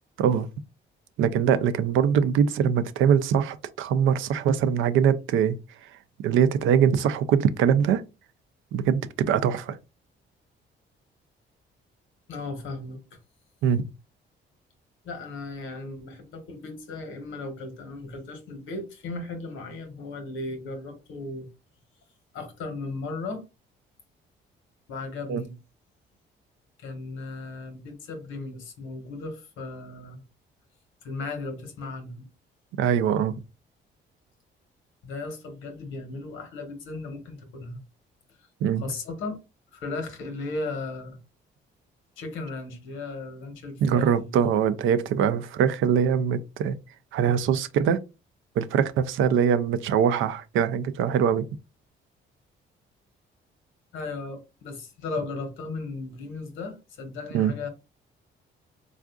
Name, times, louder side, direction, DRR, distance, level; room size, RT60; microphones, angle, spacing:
voice 1, 1.2-5.6 6.2-8.0 8.7-9.8 13.6-13.9 25.3-25.4 32.8-33.3 38.6-38.8 43.8-46.8 47.1-48.0 48.6-51.5 57.3-57.5, right 8 dB, 80° right, 0.4 m, -22 dB
voice 2, 12.3-13.2 15.0-21.5 22.3-23.4 24.9-25.5 26.8-30.2 31.0-32.2 35.0-37.8 38.8-39.4 39.7-41.2 42.2-44.3 53.9-57.7, left 3 dB, 80° left, 1.0 m, -36 dB
3.7 x 2.4 x 2.3 m
cardioid pair, 90°, 20 cm